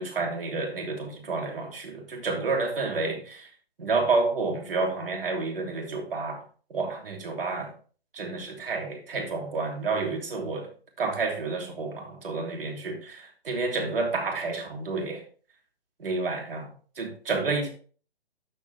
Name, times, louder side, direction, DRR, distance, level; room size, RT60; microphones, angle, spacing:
voice 1, 0.0-3.5 3.8-6.4 6.7-7.7 8.1-10.7 11.0-15.2 16.0-17.7, right 3 dB, 60° right, 3.1 m, -30 dB
12.5 x 5.4 x 3.4 m
figure-of-eight pair, 140°, 32 cm